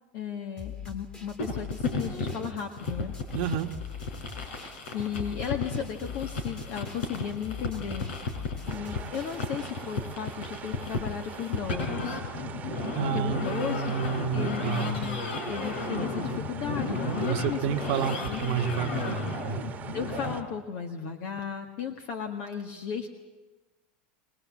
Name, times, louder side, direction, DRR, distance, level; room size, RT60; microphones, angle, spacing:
voice 1, 0.1-3.1 4.5-8.1 8.7-12.5 13.1-14.0 14.3-15.2 15.5-17.7 18.2-18.4 19.9-23.1, left 8 dB, 60° left, 4 dB, 1.7 m, -35 dB
sound 1, 0.6-9.7, left 5 dB, 15° left, 2.2 m, -42 dB
sound 2, 1.4-20.3, left 3 dB, 90° left, 4.4 m, -34 dB
voice 2, 3.3-3.7 12.9-15.0 17.2-19.6, right 7 dB, 60° right, 4 dB, 1.3 m, -30 dB
sound 3, 8.7-20.4, right 8 dB, 30° right, 1.3 m, -44 dB
22.5 x 20.0 x 7.4 m, 1.2 s
supercardioid pair, 125°, 6 cm